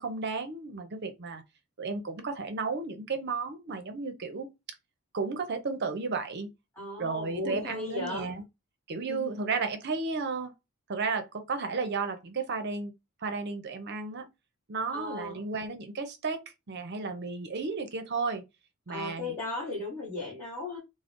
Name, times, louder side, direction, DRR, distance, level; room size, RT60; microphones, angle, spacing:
voice 1, 0.0-1.4 1.8-4.5 5.1-6.5 7.0-8.4 8.9-10.5 10.9-12.9 13.2-14.3 14.7-18.4 18.9-19.3, right 4 dB, 50° right, 0.6 m, -33 dB
voice 2, 6.7-8.3 9.1-9.3 14.9-15.4 18.9-20.8, left 2 dB, 10° left, 1.5 m, -36 dB
3.7 x 2.1 x 3.6 m
head